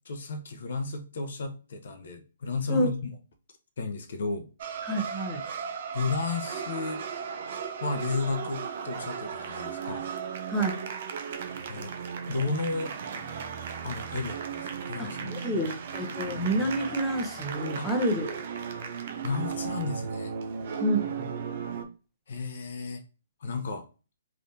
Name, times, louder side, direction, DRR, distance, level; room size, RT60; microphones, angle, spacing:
voice 1, 0.1-2.9 3.8-4.5 5.9-7.0 7.8-10.1 11.7-11.9 12.3-12.9 13.8-15.7 17.8-17.9 19.2-20.3 22.3-23.0 23.4-23.8, left 4 dB, 60° left, 0.6 m, -33 dB
sound 1, 4.6-21.8, right 7 dB, 50° right, 0.6 m, -36 dB
voice 2, 4.8-5.4 10.5-10.7 15.0-18.4 20.8-21.3, right 1 dB, 5° left, 0.8 m, -28 dB
3.5 x 2.5 x 2.7 m
hypercardioid pair, 135°, 0 cm